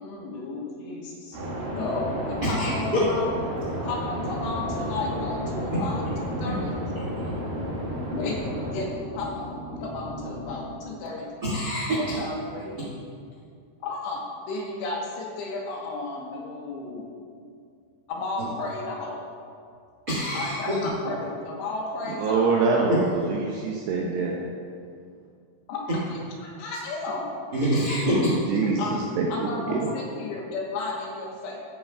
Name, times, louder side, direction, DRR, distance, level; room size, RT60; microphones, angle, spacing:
voice 1, 0.0-1.4 1.7-3.3 3.8-6.8 8.1-8.4 8.7-9.5 9.8-11.3 12.0-12.8 13.8-17.1 18.1-19.2 20.3-22.5 25.7-27.3 28.6-28.9 29.3-31.6, left 3 dB, 75° left, -2 dB, 3.1 m, -33 dB
sound 1, 1.3-8.7, right 1 dB, 55° right, 3.2 m, -32 dB
sound 2, 4.0-10.7, equal, 50° left, 3.4 m, -37 dB
voice 2, 11.4-12.1 20.1-20.7 22.9-23.0 27.5-28.3, right 1 dB, 70° right, -8 dB, 0.9 m, -25 dB
voice 3, 22.2-24.3 28.5-29.3 29.7-29.9, right 4 dB, 90° right, -1 dB, 2.4 m, -24 dB
13.5 x 8.5 x 2.3 m, 2.3 s
omnidirectional pair, 5.4 m